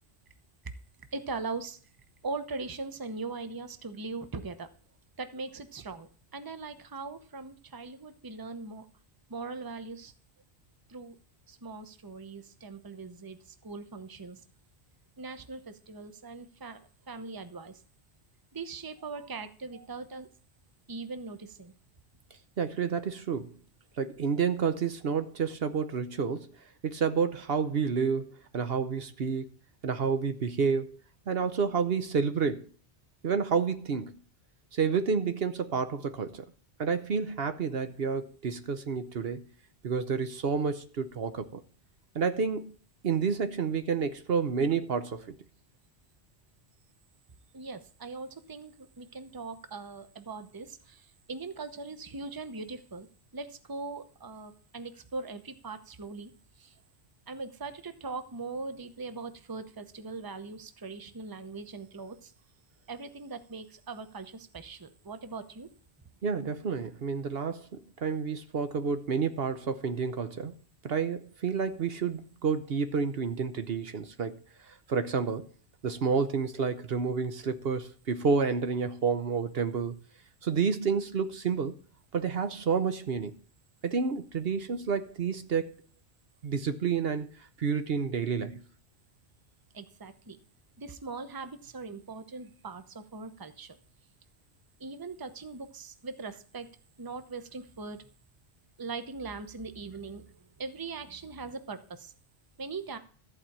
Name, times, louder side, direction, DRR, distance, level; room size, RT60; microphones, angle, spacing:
voice 1, 1.1-1.8 2.2-4.7 5.2-8.8 9.3-10.1 10.9-11.2 11.5-14.4 15.2-17.8 18.5-20.3 20.9-21.7 47.5-53.1 53.3-56.8 57.3-62.3 62.9-65.7 89.7-90.4 90.8-93.8 94.8-96.7 97.0-98.1 98.8-102.1 102.6-103.0, right 4 dB, 20° right, 0.8 m, -40 dB
voice 2, 22.6-23.6 24.0-26.6 26.8-29.5 29.8-32.7 33.2-34.2 34.7-36.5 36.8-39.4 39.8-41.6 42.1-42.7 43.0-45.4 66.2-70.5 70.8-74.3 74.6-75.5 75.8-80.0 80.4-81.8 82.1-83.4 83.8-85.7 86.4-87.3 87.6-88.6, right 5 dB, 60° right, 1.0 m, -29 dB
14.0 x 4.8 x 8.7 m
omnidirectional pair, 1.1 m